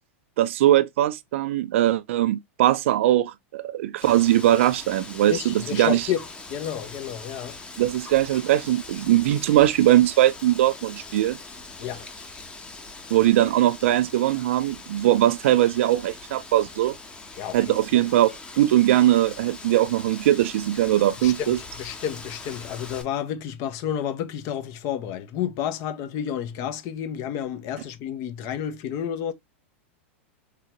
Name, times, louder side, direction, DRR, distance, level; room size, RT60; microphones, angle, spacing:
voice 1, 0.4-6.0 7.8-11.4 13.1-17.0 17.5-18.3 18.6-21.6, right 13 dB, 70° right, 0.4 m, -20 dB
Wind, 4.0-23.0, left 3 dB, 15° left, 0.9 m, -42 dB
voice 2, 5.2-6.2 6.5-7.6 11.8-12.1 17.4-18.1 21.2-29.3, left 9 dB, 45° left, 0.8 m, -31 dB
3.8 x 3.3 x 2.9 m
hypercardioid pair, 125°, 7 cm